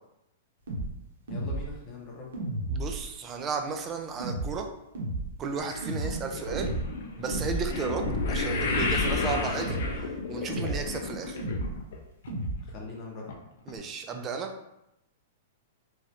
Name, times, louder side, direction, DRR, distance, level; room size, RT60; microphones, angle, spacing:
sound 1, 0.7-0.9 1.3-1.7 2.3-3.0 4.2-4.5 4.9-5.3 5.8-6.2 6.5-6.8 7.3-7.7 8.0-8.4 8.7-9.2 9.6-10.0 10.5-10.9 11.4-11.7 12.3-12.6, right 1 dB, 85° right, 0.8 m, -32 dB
voice 1, 1.3-2.3 12.6-13.3, left 3 dB, 25° left, -3 dB, 0.8 m, -41 dB
voice 2, 2.7-4.7 5.4-6.8 7.2-9.8 10.3-11.5 13.7-14.5, right 5 dB, 20° right, 4 dB, 0.3 m, -34 dB
sound 2, 5.6-12.0 12.2-12.7 13.3-13.4 13.7-13.8, left 3 dB, 65° left, 0.5 m, -32 dB
3.1 x 2.4 x 2.8 m, 0.85 s
hypercardioid pair, 160°, 0 cm